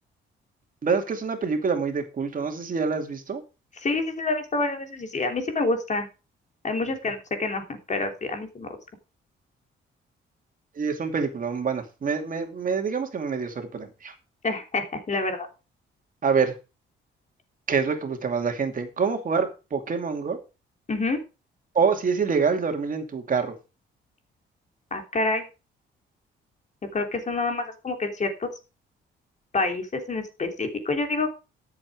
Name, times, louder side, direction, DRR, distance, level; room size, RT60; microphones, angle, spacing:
voice 1, 0.8-3.4 10.8-14.1 16.2-16.5 17.7-20.4 21.7-23.5, right 5 dB, 45° right, 5 dB, 2.5 m, -26 dB
voice 2, 3.7-6.1 6.6-8.8 14.4-15.5 20.9-21.2 24.9-25.4 26.9-28.5 29.5-31.3, left 3 dB, 35° left, 5 dB, 3.2 m, -27 dB
13.0 x 7.4 x 4.8 m, 0.30 s
cardioid pair, 90°, 20 cm